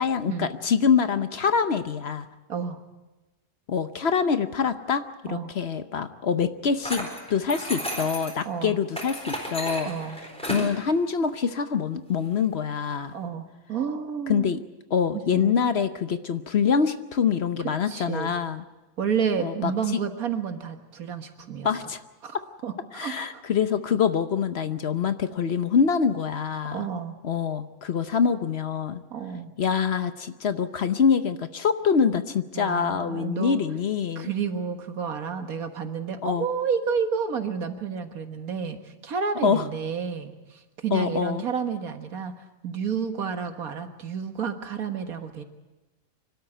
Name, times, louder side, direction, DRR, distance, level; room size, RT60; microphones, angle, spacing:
voice 1, 0.0-2.3 3.7-9.9 10.4-13.1 14.3-14.6 14.9-18.6 19.4-20.0 21.6-22.0 22.9-26.9 27.2-29.0 29.6-34.3 36.2-36.5 39.4-39.6 40.9-41.4, left 6 dB, 50° left, 10 dB, 1.0 m, -25 dB
voice 2, 2.5-2.8 5.3-5.5 8.5-8.8 9.8-10.2 13.1-14.5 15.1-15.5 17.9-18.3 19.0-21.7 22.2-23.4 26.7-27.2 29.1-29.5 32.6-33.6 34.2-42.3 42.6-45.4, right 6 dB, 90° right, 7 dB, 2.0 m, -30 dB
sound 1, 6.8-8.4 8.9-10.7, equal, 5° left, 4.2 m, -33 dB
25.0 x 13.0 x 9.1 m, 1.1 s
omnidirectional pair, 1.5 m